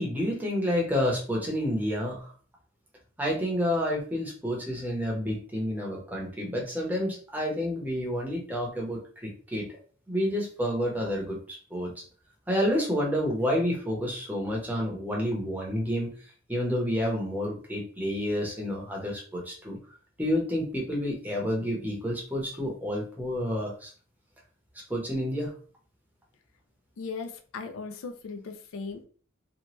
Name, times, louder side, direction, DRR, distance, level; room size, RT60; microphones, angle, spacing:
voice 1, 0.0-2.2 3.2-9.7 10.1-11.9 12.5-16.1 16.5-19.8 20.2-23.9 24.9-25.5, equal, 10° right, -2 dB, 0.7 m, -29 dB
voice 2, 27.0-29.0, left 4 dB, 80° left, 7 dB, 0.4 m, -38 dB
2.9 x 2.2 x 2.9 m, 0.42 s
head